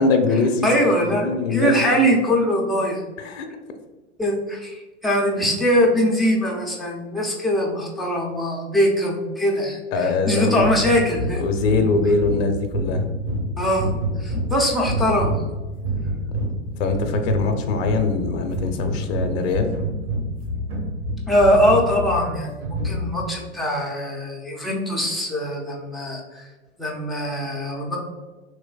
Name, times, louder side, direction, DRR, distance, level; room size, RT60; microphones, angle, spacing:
voice 1, 0.0-0.7 1.0-1.8 3.2-3.5 9.9-10.7 11.4-13.1 16.8-19.7, left 3 dB, 55° left, 4 dB, 0.5 m, -22 dB
voice 2, 0.6-3.0 4.2-11.4 13.6-13.9 14.2-15.4 21.3-26.5 26.8-28.0, equal, ahead, -4 dB, 0.3 m, -22 dB
sound 1, 10.6-23.3, right 1 dB, 45° right, 1.2 m, -28 dB
3.3 x 3.0 x 2.2 m, 1.2 s
hypercardioid pair, 95°, 37 cm